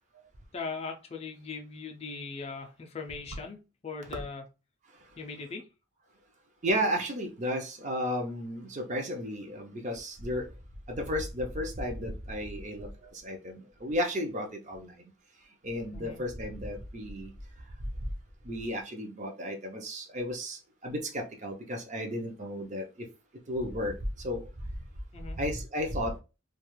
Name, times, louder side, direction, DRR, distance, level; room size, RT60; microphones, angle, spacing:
voice 1, 0.5-4.5 5.2-5.6 15.9-16.2 25.1-25.4, left 4 dB, 30° left, 3 dB, 0.4 m, -39 dB
voice 2, 6.6-10.5 10.9-14.9 15.6-17.3 18.4-23.1 23.5-24.4 25.4-26.2, equal, 35° right, 2 dB, 0.5 m, -33 dB
2.3 x 2.3 x 3.0 m, 0.30 s
head